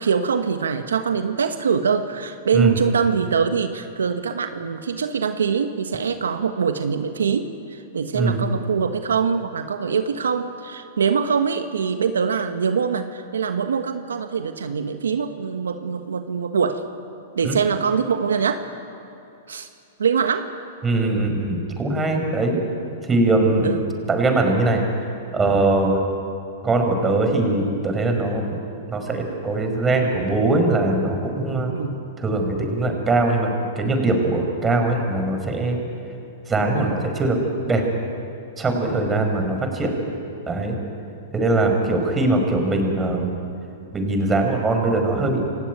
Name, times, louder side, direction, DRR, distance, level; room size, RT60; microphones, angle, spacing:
voice 1, 0.0-16.8 17.3-18.6 19.5-19.7 20.0-20.5 23.6-23.9 31.7-32.0 36.7-37.0, right 6 dB, 90° right, 8 dB, 1.3 m, -23 dB
voice 2, 20.8-22.6 23.1-23.7 24.1-24.8 25.3-26.0 26.6-28.5 28.9-31.7 32.2-33.5 33.7-35.8 36.5-37.4 37.7-37.8 38.6-39.9 40.5-40.8 41.3-43.3 43.9-45.4, right 2 dB, 15° right, 4 dB, 5.0 m, -21 dB
28.0 x 16.0 x 9.3 m, 2.6 s
hypercardioid pair, 125°, 0 cm